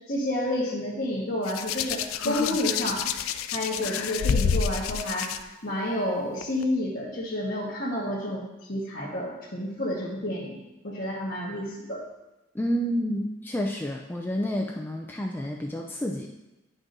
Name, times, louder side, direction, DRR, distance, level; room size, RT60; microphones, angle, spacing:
voice 1, 0.1-3.1 3.5-5.3 5.6-10.6 10.8-12.0, left 1 dB, 45° left, -9 dB, 1.4 m, -30 dB
Hands, 1.5-5.4 6.4-6.6, left 7 dB, 80° left, 0.4 m, -28 dB
voice 2, 12.5-16.3, equal, 10° left, 0 dB, 0.4 m, -29 dB
10.5 x 6.1 x 2.6 m, 1.0 s
head